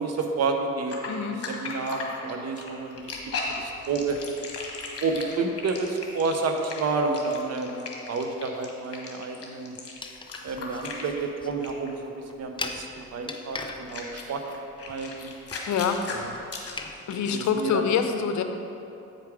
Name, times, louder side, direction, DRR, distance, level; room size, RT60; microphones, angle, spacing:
voice 1, 0.0-1.2 1.5-3.2 3.6-4.2 5.0-9.8 10.4-15.3 16.1-16.3 17.1-17.9, right 4 dB, 55° right, 4 dB, 0.9 m, -30 dB
sound 1, 0.9-11.4 11.6-11.9 13.3-13.4 13.9-17.6, left 4 dB, 50° left, 1.4 m, -37 dB
voice 2, 1.1-1.4 15.7-16.0 17.1-18.4, left 7 dB, 70° left, 7 dB, 0.7 m, -25 dB
sound 2, 10.0-16.9, left 3 dB, 15° left, 0.6 m, -41 dB
8.3 x 4.9 x 4.8 m, 2.8 s
cardioid pair, 90°, 30 cm